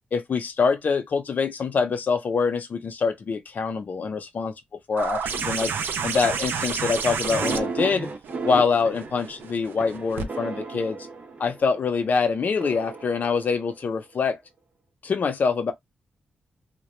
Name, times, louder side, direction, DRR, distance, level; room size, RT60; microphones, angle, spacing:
voice 1, 0.1-4.5 4.9-8.1 8.4-11.0 11.4-14.4 15.0-15.7, left 5 dB, 55° left, 0.6 m, -25 dB
sound 1, 5.0-10.3 11.6-11.7, right 6 dB, 80° right, 0.4 m, -30 dB
sound 2, 7.3-11.8 12.6-14.1, right 4 dB, 40° right, 0.7 m, -34 dB
2.3 x 2.0 x 3.0 m
cardioid pair, 85°, 3 cm